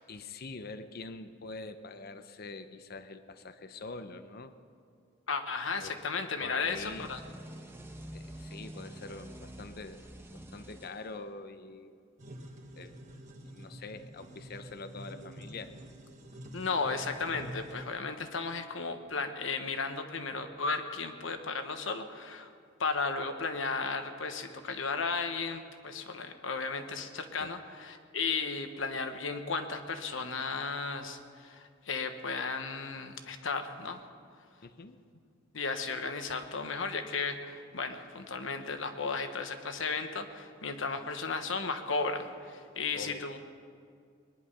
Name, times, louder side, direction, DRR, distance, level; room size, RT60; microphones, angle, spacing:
voice 1, 0.1-4.5 5.8-6.0 6.4-7.1 8.1-10.0 10.3-12.0 12.8-12.9 13.5-15.7 27.4-27.5 34.6-35.0 42.9-43.3, left 3 dB, 50° left, 10 dB, 0.7 m, -44 dB
voice 2, 5.3-7.2 16.5-22.5 22.8-34.0 35.5-43.4, left 4 dB, 75° left, 7 dB, 1.2 m, -34 dB
sound 1, 6.6-11.5, right 1 dB, 10° right, 1.1 m, -47 dB
sound 2, 12.2-17.8, equal, 40° right, 1.5 m, -47 dB
21.5 x 11.0 x 5.6 m, 2.2 s
head